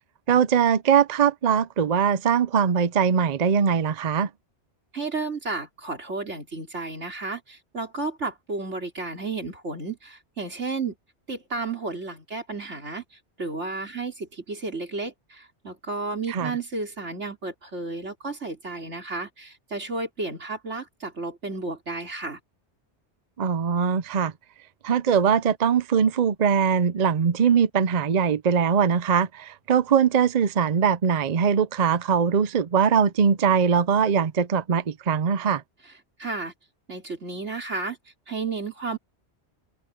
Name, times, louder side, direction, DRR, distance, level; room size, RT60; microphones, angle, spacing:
voice 1, 0.3-4.3 16.3-16.5 23.4-24.3 24.8-35.6, right 7 dB, 45° right, 0.6 m, -21 dB
voice 2, 4.9-10.9 11.3-13.0 13.4-22.4 36.2-36.5 36.9-38.0 38.3-39.0, right 3 dB, 80° right, 4.2 m, -32 dB
open air
omnidirectional pair, 1.2 m